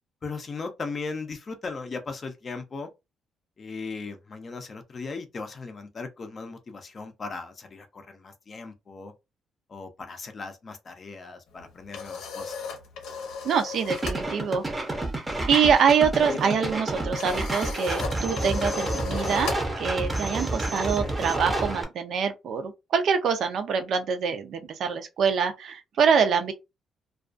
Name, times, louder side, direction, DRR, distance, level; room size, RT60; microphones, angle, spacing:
voice 1, 0.2-2.9 3.6-9.1 9.7-12.6, left 4 dB, 35° left, 0.5 m, -37 dB
sound 1, 11.5-14.2 14.5-14.8 15.1-21.7, left 5 dB, 90° left, 0.7 m, -37 dB
voice 2, 13.4-14.6 15.5-26.5, right 6 dB, 60° right, 0.4 m, -25 dB
sound 2, 13.9-21.8, right 2 dB, 15° right, 0.6 m, -29 dB
2.3 x 2.2 x 2.4 m
cardioid pair, 140°, 0 cm